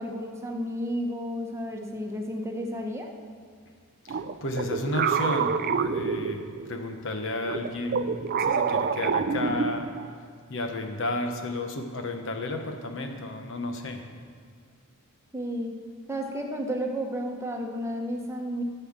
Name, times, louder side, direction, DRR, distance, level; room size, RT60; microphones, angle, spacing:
voice 1, 0.0-3.1 15.3-15.7 16.1-18.6, equal, 15° right, 1 dB, 1.1 m, -32 dB
voice 2, 4.1-8.1 8.4-9.9 10.5-14.0, left 2 dB, 60° left, 5 dB, 1.1 m, -32 dB
sound 1, 4.1-6.8 7.4-10.1, right 6 dB, 45° right, 0.4 m, -28 dB
14.0 x 5.7 x 7.4 m, 2.1 s
head